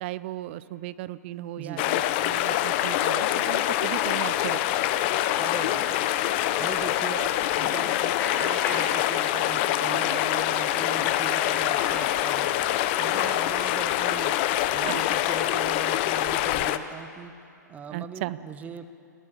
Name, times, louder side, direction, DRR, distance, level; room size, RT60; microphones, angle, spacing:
voice 1, 0.0-4.6 14.9-15.1 17.9-18.4, right 15 dB, 40° right, 17 dB, 0.6 m, -36 dB
sound 1, 1.8-16.8, left 13 dB, 35° left, 0.9 m, -25 dB
sound 2, 5.2-14.5, left 3 dB, 20° left, 3.7 m, -42 dB
voice 2, 5.3-6.1 6.6-12.5 13.0-14.4 14.7-17.4 17.7-18.9, right 6 dB, 15° right, 11 dB, 1.0 m, -40 dB
sound 3, 6.2-12.5, left 4 dB, 70° left, 2.5 m, -50 dB
21.5 x 16.0 x 8.6 m, 2.4 s
figure-of-eight pair, 115°, 10 cm